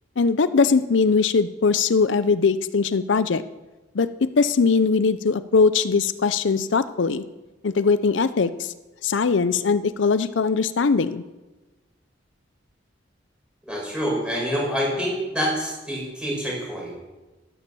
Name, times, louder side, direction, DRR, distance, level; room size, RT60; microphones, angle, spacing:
voice 1, 0.2-3.4 3.9-7.2 7.6-8.7 9.0-11.2, left 4 dB, 75° left, 13 dB, 0.6 m, -21 dB
voice 2, 13.7-16.9, equal, 5° right, -4 dB, 6.2 m, -26 dB
12.5 x 12.0 x 6.9 m, 1.2 s
head